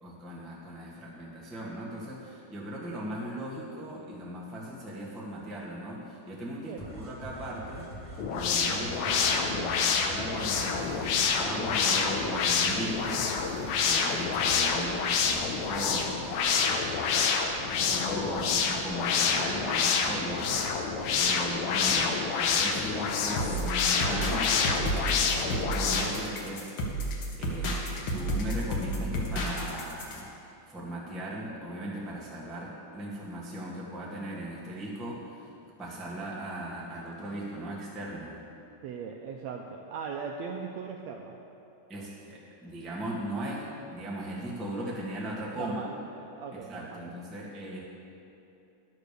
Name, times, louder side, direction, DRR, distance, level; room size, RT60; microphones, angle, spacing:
voice 1, 0.0-17.2 17.8-27.1 27.4-27.8 28.1-30.3 30.7-35.5 35.8-38.4 41.9-45.9 46.5-47.8, right 1 dB, ahead, -6 dB, 0.5 m, -38 dB
sound 1, 6.8-16.1, right 1 dB, 25° right, 1.1 m, -44 dB
sound 2, 8.2-26.2, left 5 dB, 75° left, 2.0 m, -27 dB
voice 2, 21.1-21.6 38.8-41.4 45.5-47.1, right 6 dB, 80° right, 2 dB, 1.6 m, -39 dB
sound 3, 23.4-30.2, equal, 60° left, 1.5 m, -32 dB
11.5 x 6.5 x 6.8 m, 2.8 s
omnidirectional pair, 3.6 m